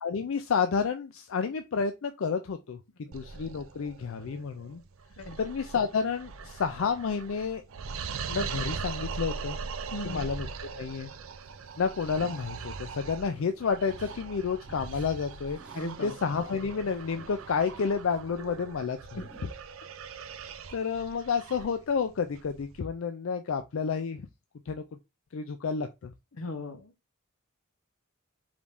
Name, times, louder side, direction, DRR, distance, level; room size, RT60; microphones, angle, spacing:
voice 1, 0.0-2.8 3.1-4.8 5.4-7.6 8.3-9.6 10.0-10.5 10.8-11.1 11.8-15.6 16.0-19.2 20.7-24.3 24.7-24.8 25.3-26.1, left 5 dB, 65° left, 0.4 m, -30 dB
sound 1, 3.1-22.8, right 5 dB, 70° right, 0.5 m, -41 dB
voice 2, 9.9-10.3 15.7-16.1 19.1-19.4 26.3-26.9, left 1 dB, 85° left, 1.0 m, -38 dB
sound 2, 11.3-12.7 13.1-14.4 14.7-17.6 18.2-18.4 19.2-19.4, right 1 dB, 5° right, 0.8 m, -54 dB
5.0 x 2.7 x 3.4 m
head